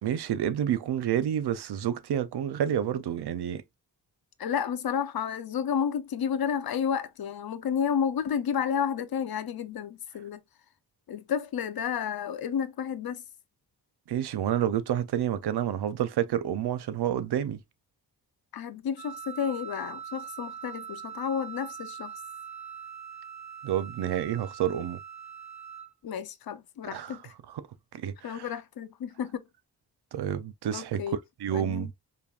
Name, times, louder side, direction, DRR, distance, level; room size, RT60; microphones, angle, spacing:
voice 1, 0.0-3.6 14.1-17.6 23.6-25.0 26.9-27.2 27.5-27.7 27.9-28.5 30.1-31.0 31.4-31.9, right 10 dB, 90° right, 0.6 m, -29 dB
voice 2, 4.4-10.4 11.1-13.2 18.5-22.1 26.0-27.3 28.2-29.4 30.7-31.2 31.5-31.9, left 7 dB, 65° left, 0.6 m, -31 dB
Wind instrument woodwind instrument, 19.0-25.9, right 8 dB, 20° left, 1.3 m, -42 dB
5.1 x 2.6 x 2.3 m
wide cardioid pair, 110°, 39 cm